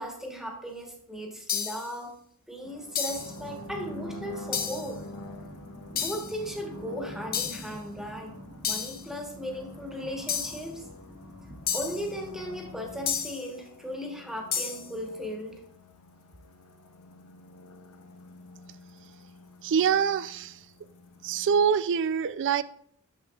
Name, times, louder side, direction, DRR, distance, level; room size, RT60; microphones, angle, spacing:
voice 1, 0.0-2.2 2.5-5.1 5.9-8.3 8.6-10.8 11.7-15.6, equal, ahead, 1.2 m, -37 dB
sound 1, 1.5-1.9 2.9-3.4 4.5-4.9 6.0-6.4 7.3-7.7 8.6-9.0 10.3-10.7 11.7-12.1 13.1-13.5 14.5-14.9, left 7 dB, 40° left, 0.7 m, -31 dB
sound 2, 2.6-21.7, left 2 dB, 90° left, 0.7 m, -47 dB
sound 3, 3.1-13.3, right 1 dB, 40° right, 1.0 m, -48 dB
voice 2, 19.6-20.5 21.2-22.6, right 7 dB, 55° right, 0.3 m, -25 dB
9.2 x 6.6 x 2.4 m
head